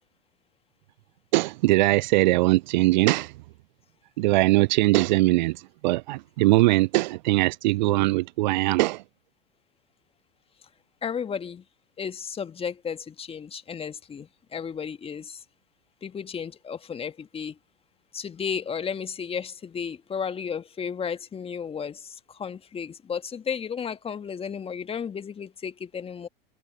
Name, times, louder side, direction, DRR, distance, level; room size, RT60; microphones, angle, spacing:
voice 1, 1.3-3.3 4.2-9.0, right 20 dB, 50° right, 0.5 m, -21 dB
voice 2, 11.0-11.6 12.0-15.4 16.0-17.6 18.1-26.3, left 7 dB, 20° left, 1.8 m, -33 dB
figure-of-eight pair, 90°, 29 cm